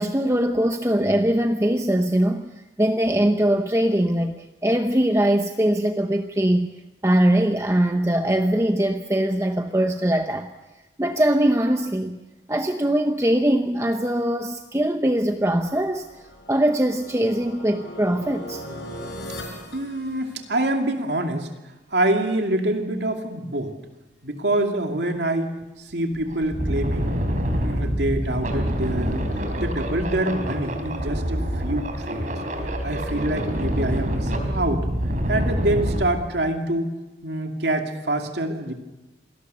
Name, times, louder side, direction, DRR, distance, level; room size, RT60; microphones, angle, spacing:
voice 1, 0.0-2.5 2.8-4.4 4.6-6.7 7.0-10.5 11.0-12.2 12.5-16.1 16.5-18.6, right 1 dB, 15° right, 0.8 m, -21 dB
sound 1, 15.6-20.8, left 1 dB, 75° left, 5.2 m, -39 dB
voice 2, 19.7-21.5 21.9-23.7 24.2-25.5 25.9-27.1 27.5-32.3 32.8-34.9 35.3-36.9 37.2-38.7, right 1 dB, 70° right, 2.5 m, -26 dB
sound 2, 25.6-25.7 26.2-36.0, equal, 45° right, 3.6 m, -26 dB
27.0 x 19.0 x 6.8 m
head